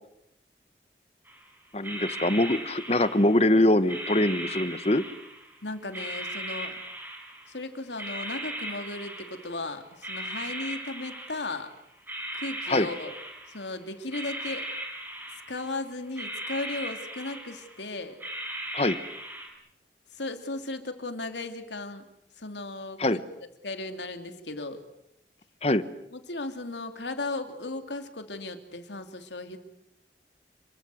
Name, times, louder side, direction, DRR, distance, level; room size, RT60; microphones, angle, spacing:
sound 1, 1.3-1.4 1.8-3.5 3.9-5.5 5.9-7.6 8.0-9.7 10.0-11.7 12.1-13.7 14.0-15.8 16.2-17.8 18.2-19.5, right 1 dB, 10° right, 6.1 m, -38 dB
voice 1, 1.7-5.0 12.7-12.9 18.7-19.0 23.0-23.2 25.6-25.8, left 1 dB, 35° left, 13 dB, 1.2 m, -23 dB
voice 2, 5.6-6.8 7.5-11.7 12.3-13.1 13.5-14.7 15.5-18.2 20.1-22.0 22.4-23.2 23.6-24.8 26.1-29.6, left 2 dB, 85° left, 7 dB, 3.1 m, -36 dB
28.0 x 23.5 x 8.0 m, 0.80 s
head